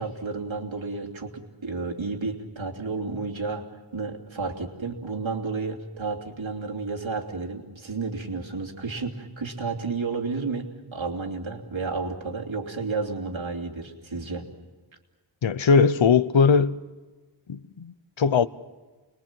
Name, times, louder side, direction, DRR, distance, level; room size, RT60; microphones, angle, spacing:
voice 1, 0.0-3.7 3.9-14.5, right 4 dB, 85° right, 3.0 m, -31 dB
voice 2, 15.4-16.8 17.5-18.5, left 5 dB, 80° left, 0.9 m, -20 dB
29.5 x 22.0 x 7.5 m
wide cardioid pair, 65°, 45 cm